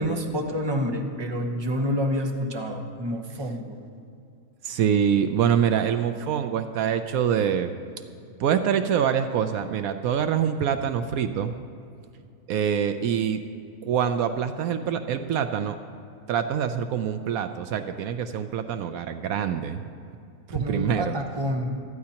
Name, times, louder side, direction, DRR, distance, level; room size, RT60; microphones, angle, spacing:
voice 1, 0.0-3.8 20.5-21.7, equal, 20° right, 2 dB, 1.0 m, -28 dB
voice 2, 4.6-7.7 8.4-11.5 12.5-13.4 13.8-15.8 16.3-19.8 20.5-21.1, right 8 dB, 75° right, 9 dB, 1.0 m, -25 dB
19.0 x 13.0 x 2.9 m, 2.5 s
omnidirectional pair, 1.6 m